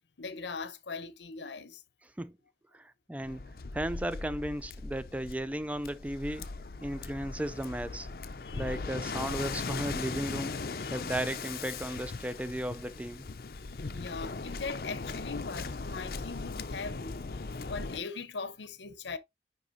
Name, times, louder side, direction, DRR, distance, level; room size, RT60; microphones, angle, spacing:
voice 1, 0.2-1.8 8.4-8.7 10.8-11.0 13.9-19.2, left 4 dB, 85° left, 0.8 m, -40 dB
voice 2, 2.7-3.4 3.7-6.5 6.8-8.1 8.5-10.6 10.9-13.3, right 1 dB, 10° right, 0.3 m, -35 dB
Waves surf, 3.2-18.0, left 4 dB, 55° left, 0.5 m, -39 dB
9.8 x 3.9 x 2.7 m
head